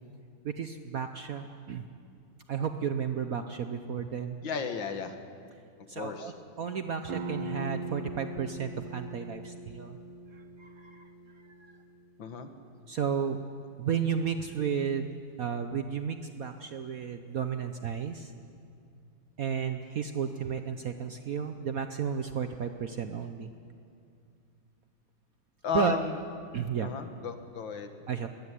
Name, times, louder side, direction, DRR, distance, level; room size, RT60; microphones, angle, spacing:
voice 1, 0.4-1.8 2.5-4.4 5.9-10.0 10.3-11.1 12.9-13.4 13.8-15.1 15.4-18.3 19.4-23.5 25.7-26.0 26.5-26.9 28.1-28.3, right 7 dB, 60° right, 7 dB, 1.0 m, -33 dB
voice 2, 4.4-5.2 6.0-6.3 12.2-12.5 25.6-26.2 26.8-27.9, left 6 dB, 65° left, 8 dB, 2.0 m, -34 dB
sound 1, 7.1-12.5, right 2 dB, 90° right, 2.2 m, -41 dB
21.5 x 15.5 x 9.9 m, 2.4 s
omnidirectional pair, 2.3 m